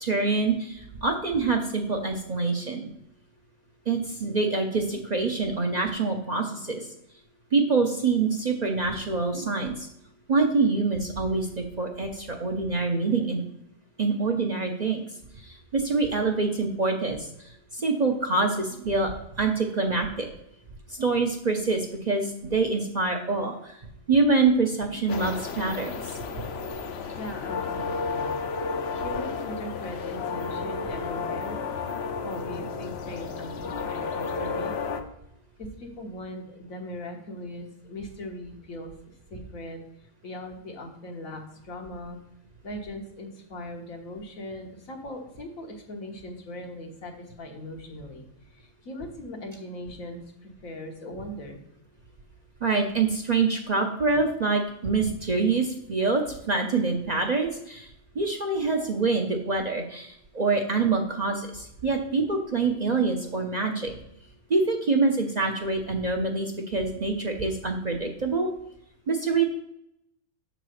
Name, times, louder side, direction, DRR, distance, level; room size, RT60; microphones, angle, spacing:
voice 1, 0.0-2.9 3.9-6.9 7.5-9.9 10.3-13.4 14.0-15.1 15.4-17.3 17.7-20.3 20.9-23.8 24.1-26.2 52.6-57.9 58.1-63.9 64.5-68.5 69.1-69.4, right 3 dB, 45° right, 2 dB, 0.6 m, -25 dB
sound 1, 25.1-35.0, left 5 dB, 60° left, 0.8 m, -32 dB
voice 2, 27.2-28.4 28.9-31.6 32.2-34.8 35.6-38.9 39.3-39.8 40.2-42.2 42.6-51.6, left 1 dB, 85° left, 2 dB, 1.7 m, -39 dB
6.6 x 4.0 x 6.3 m, 0.79 s
omnidirectional pair, 1.4 m